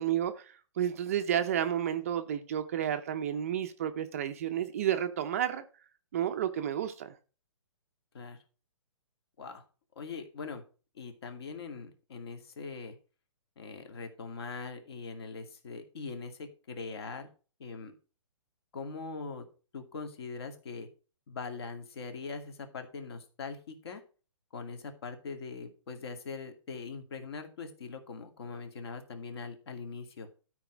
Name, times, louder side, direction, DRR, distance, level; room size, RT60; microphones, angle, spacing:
voice 1, 0.0-5.6 6.1-7.2, right 10 dB, 25° right, 0.6 m, -31 dB
voice 2, 10.0-10.6 10.9-13.0 13.6-17.3 17.6-17.9 18.7-19.4 19.7-20.9 21.3-24.0 24.5-30.3, left 4 dB, 50° left, 2.4 m, -41 dB
12.5 x 4.8 x 6.0 m
hypercardioid pair, 170°, 17 cm